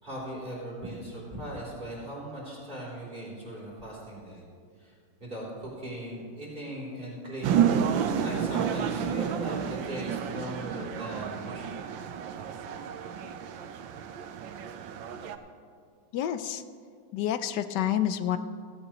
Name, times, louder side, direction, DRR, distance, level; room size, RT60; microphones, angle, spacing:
voice 1, 0.0-4.4 4.8-4.9 5.2-7.7 8.2-11.8, right 1 dB, 25° right, -6 dB, 3.7 m, -39 dB
sound 1, 7.4-15.4, right 8 dB, 90° right, 1.5 m, -30 dB
voice 2, 16.1-16.6 17.1-18.4, left 10 dB, 70° left, 11 dB, 1.2 m, -28 dB
16.0 x 15.0 x 3.0 m, 2.2 s
omnidirectional pair, 2.0 m